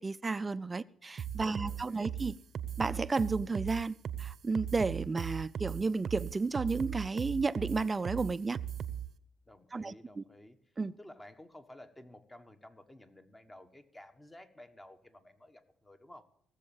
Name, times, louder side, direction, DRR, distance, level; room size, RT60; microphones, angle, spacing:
voice 1, 0.0-2.4 2.8-8.6 9.7-10.2 10.8-10.9, right 3 dB, 25° right, 0.5 m, -32 dB
sound 1, 1.2-9.1, right 9 dB, 55° right, 0.7 m, -38 dB
voice 2, 1.4-2.2 9.5-10.6 11.0-16.3, left 1 dB, 15° left, 1.3 m, -54 dB
16.5 x 7.3 x 7.1 m
cardioid pair, 90°, 0 cm